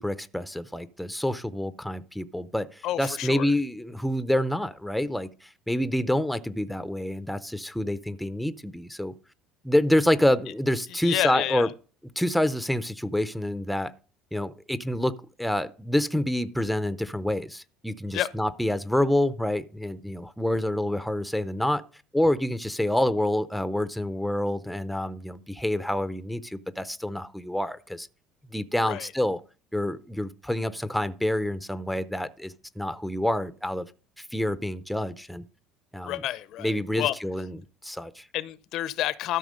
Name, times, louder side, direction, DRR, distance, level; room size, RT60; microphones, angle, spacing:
voice 1, 0.0-9.1 9.6-11.7 12.2-13.9 14.3-21.8 22.1-28.1 28.5-29.4 29.7-33.9 34.2-35.4 35.9-36.2 36.6-38.3, left 1 dB, ahead, 0.5 m, -27 dB
voice 2, 2.8-3.5 11.0-11.7 18.1-18.3 28.8-29.1 36.1-36.7 37.0-37.1 38.3-39.4, left 13 dB, 55° left, 0.6 m, -29 dB
13.0 x 5.9 x 5.1 m
cardioid pair, 140°, 0 cm